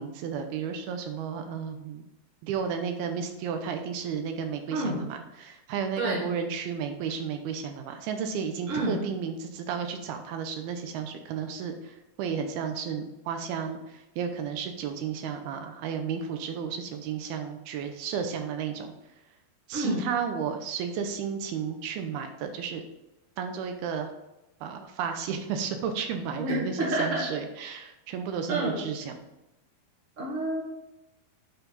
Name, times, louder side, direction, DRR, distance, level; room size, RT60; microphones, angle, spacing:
voice 1, 0.0-2.0 2.4-18.9 19.7-22.8 23.4-24.1 24.6-29.2, right 7 dB, 85° right, 6 dB, 2.6 m, -33 dB
voice 2, 4.7-5.0 6.0-6.3 8.7-9.0 19.7-20.1 26.4-27.2 28.5-28.8 30.2-30.6, right 1 dB, 30° right, -4 dB, 1.4 m, -29 dB
8.9 x 4.6 x 4.0 m, 0.92 s
omnidirectional pair, 4.5 m